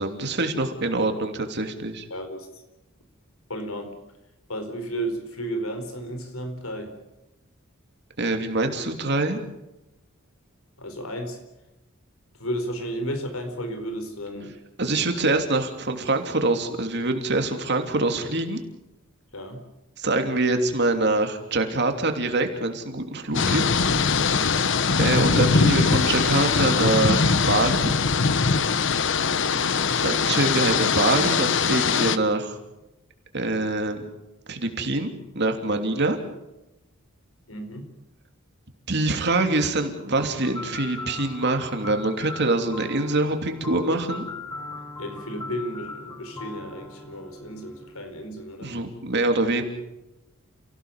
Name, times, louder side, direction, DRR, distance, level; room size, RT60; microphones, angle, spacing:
voice 1, 0.0-2.1 8.2-9.4 14.8-18.6 20.0-23.6 25.0-27.9 30.0-32.6 33.3-34.0 34.5-36.2 38.9-44.2 48.6-49.6, right 2 dB, 55° right, 5 dB, 3.0 m, -24 dB
voice 2, 2.1-2.6 3.5-4.0 4.5-6.9 10.8-11.4 12.4-14.5 19.3-19.6 24.3-24.7 29.4-29.7 37.5-37.9 45.0-48.8, equal, 85° left, 7 dB, 4.4 m, -33 dB
sound 1, 23.3-32.2, left 5 dB, 60° left, 0.9 m, -21 dB
sound 2, 40.1-48.0, left 3 dB, 15° left, 4.6 m, -39 dB
29.5 x 16.5 x 7.3 m, 0.96 s
head